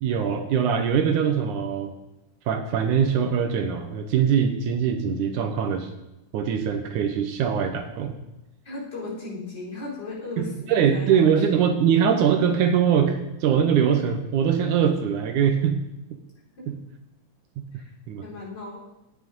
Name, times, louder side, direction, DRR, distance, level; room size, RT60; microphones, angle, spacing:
voice 1, 0.0-1.9 2.5-5.9 6.3-8.2 10.4-15.8 16.7-16.8 17.6-17.7 18.1-18.2, right 7 dB, 75° right, 6 dB, 2.3 m, -22 dB
voice 2, 8.6-11.6 16.6-16.7 17.7-17.9 18.2-18.8, left 2 dB, 30° left, -7 dB, 5.0 m, -36 dB
11.5 x 9.8 x 5.4 m, 0.91 s
omnidirectional pair, 3.7 m